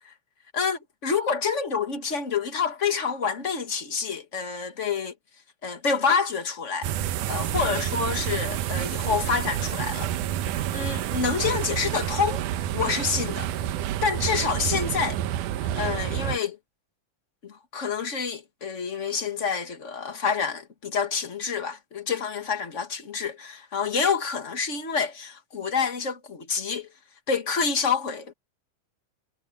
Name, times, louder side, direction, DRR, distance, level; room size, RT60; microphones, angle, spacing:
voice 1, 0.5-5.1 5.6-6.9 7.3-10.1 10.7-12.4 12.7-13.5 14.0-15.2 15.6-16.6 17.4-26.9 27.3-28.3, left 5 dB, 35° left, 1.3 m, -27 dB
sound 1, 6.8-16.4, right 11 dB, 75° right, 2.4 m, -29 dB
omnidirectional pair, 3.8 m